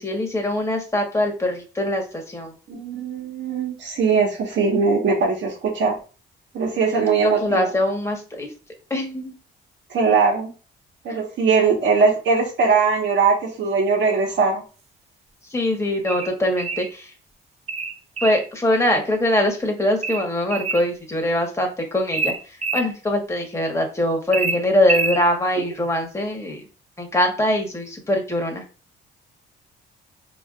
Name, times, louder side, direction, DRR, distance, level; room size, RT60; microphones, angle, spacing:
voice 1, 0.0-2.5 7.2-8.5 8.9-9.3 15.5-17.1 18.2-22.3 22.7-26.6 27.0-28.6, left 1 dB, 15° left, 2 dB, 1.4 m, -22 dB
voice 2, 2.7-6.0 6.5-7.7 9.9-10.5 11.0-14.6 25.6-25.7, right 5 dB, 65° right, 1 dB, 1.5 m, -20 dB
sound 1, 16.1-16.9 17.7-18.5 20.0-20.9 22.1-22.9 24.3-25.2, right 4 dB, 35° right, 0.6 m, -26 dB
4.7 x 3.0 x 2.5 m, 0.35 s
cardioid pair, 90°, 20 cm